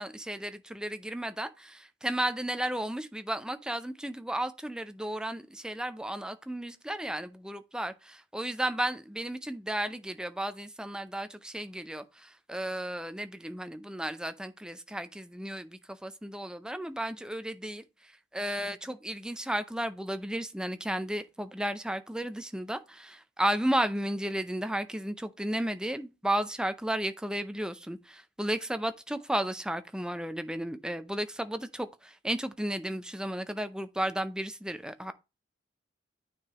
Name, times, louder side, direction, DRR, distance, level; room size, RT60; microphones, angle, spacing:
voice 1, 0.0-7.9 8.3-17.8 18.3-35.1, right 1 dB, 5° right, 0.5 m, -33 dB
9.2 x 4.7 x 3.0 m
head